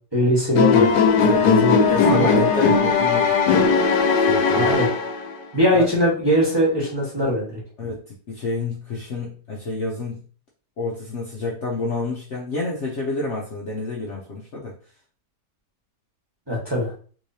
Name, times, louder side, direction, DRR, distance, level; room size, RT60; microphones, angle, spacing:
voice 1, 0.1-0.9 1.4-1.8 2.1-2.7 4.5-4.9 5.5-7.5 16.5-16.9, equal, 15° right, -5 dB, 1.1 m, -21 dB
sound 1, 0.5-5.4, left 5 dB, 80° left, 1.2 m, -18 dB
voice 2, 1.2-1.5 1.8-3.7 4.2-4.7 5.7-5.9 7.8-10.2 10.8-14.7, left 2 dB, 55° left, -3 dB, 0.8 m, -29 dB
3.6 x 3.2 x 2.7 m, 0.42 s
omnidirectional pair, 1.8 m